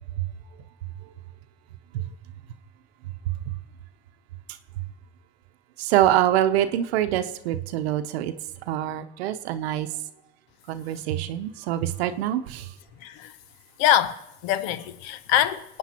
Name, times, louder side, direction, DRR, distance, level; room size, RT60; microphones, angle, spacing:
voice 1, 5.8-8.3 8.7-9.9 10.7-12.7, right 12 dB, 90° right, 0.8 m, -25 dB
voice 2, 13.0-13.4 13.8-15.8, left 11 dB, 85° left, 0.9 m, -24 dB
25.5 x 9.2 x 4.3 m
hypercardioid pair, 70°, 31 cm